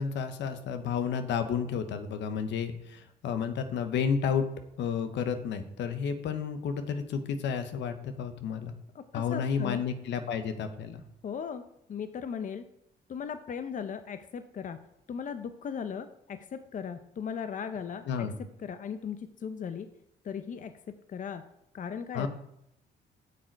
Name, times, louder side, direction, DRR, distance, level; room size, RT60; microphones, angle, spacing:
voice 1, 0.0-4.5 4.8-8.7 9.1-11.0 18.1-18.4 22.1-22.3, left 6 dB, 80° left, 8 dB, 1.0 m, -31 dB
voice 2, 8.9-9.8 11.2-11.6 11.9-12.6 13.1-14.8 15.1-18.3 18.6-19.9 20.2-20.7 21.1-21.4 21.7-22.3, left 7 dB, 45° left, 10 dB, 0.7 m, -37 dB
8.4 x 6.6 x 4.7 m, 0.79 s
cardioid pair, 90°, 19 cm